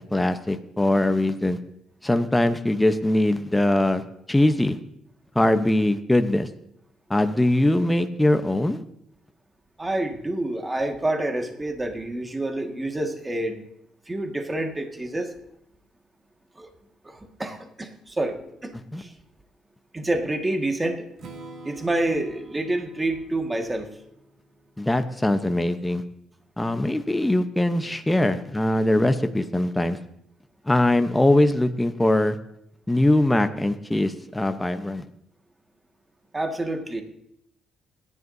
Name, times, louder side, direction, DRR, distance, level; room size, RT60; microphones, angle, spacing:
voice 1, 0.1-1.6 2.0-4.0 4.3-4.8 5.3-6.5 7.1-8.8 18.9-19.0 24.8-26.0 26.6-30.0 30.6-32.4 32.9-35.0, left 1 dB, 10° left, 8 dB, 0.9 m, -21 dB
voice 2, 9.8-13.6 14.1-15.3 16.6-16.7 17.0-18.4 18.6-18.7 19.0-19.1 19.9-21.1 21.6-24.0 36.3-37.0, right 1 dB, 20° right, 4 dB, 1.8 m, -28 dB
Strum, 21.2-25.1, right 2 dB, 65° right, 2.5 m, -46 dB
27.5 x 11.0 x 2.7 m, 0.76 s
cardioid pair, 90°, 0 cm